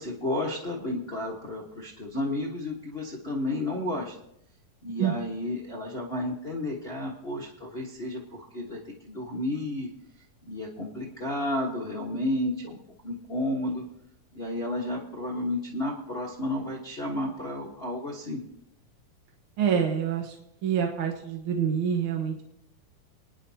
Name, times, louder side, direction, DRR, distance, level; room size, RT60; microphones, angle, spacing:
voice 1, 0.0-4.1 4.8-9.9 10.4-12.8 13.0-13.8 14.3-18.4, left 1 dB, 50° left, -3 dB, 0.7 m, -32 dB
voice 2, 19.6-20.3 20.6-22.4, right 8 dB, 60° right, 2 dB, 1.5 m, -26 dB
29.5 x 10.0 x 2.9 m, 0.78 s
omnidirectional pair, 3.9 m